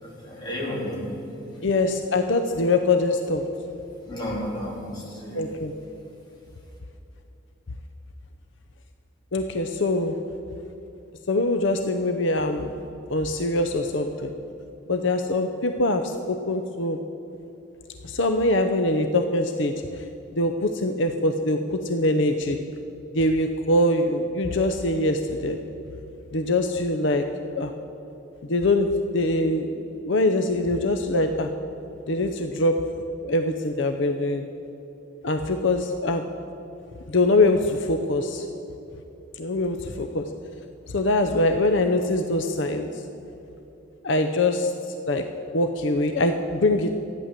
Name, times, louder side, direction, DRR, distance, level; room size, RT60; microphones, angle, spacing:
voice 1, 0.0-1.1 1.5-1.7 4.1-5.5, equal, 20° left, -4 dB, 3.4 m, -32 dB
voice 2, 1.6-3.4 5.3-5.7 9.3-10.2 11.3-12.7 13.1-14.3 14.9-17.0 18.0-20.1 20.3-22.6 23.1-25.6 26.3-27.2 27.5-27.7 28.5-31.5 32.1-32.8 33.2-34.4 35.2-36.2 37.1-38.5 39.3-40.2 40.9-43.0 44.0-45.2 45.5-46.9, left 2 dB, 65° left, 6 dB, 0.7 m, -23 dB
14.0 x 9.9 x 7.5 m, 3.0 s
head